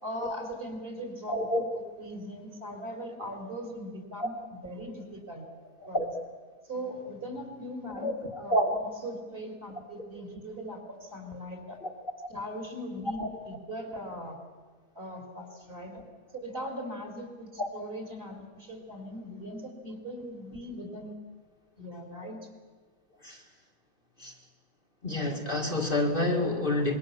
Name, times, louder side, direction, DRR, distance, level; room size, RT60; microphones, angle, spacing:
voice 1, 0.0-1.5 1.7-5.4 5.9-6.1 6.6-8.1 8.4-11.8 12.3-13.2 13.4-14.4 14.9-16.0 16.4-21.2 21.8-22.4, equal, 35° right, 3 dB, 4.2 m, -40 dB
voice 2, 1.3-1.7 4.2-4.3 5.9-6.1 8.0-8.1 8.5-8.8 11.8-11.9 13.2-13.3 17.6-17.7 23.2-23.4 24.2-24.3 25.0-27.0, left 1 dB, 35° left, 0 dB, 2.1 m, -28 dB
25.5 x 22.5 x 7.2 m, 1.4 s
omnidirectional pair, 1.7 m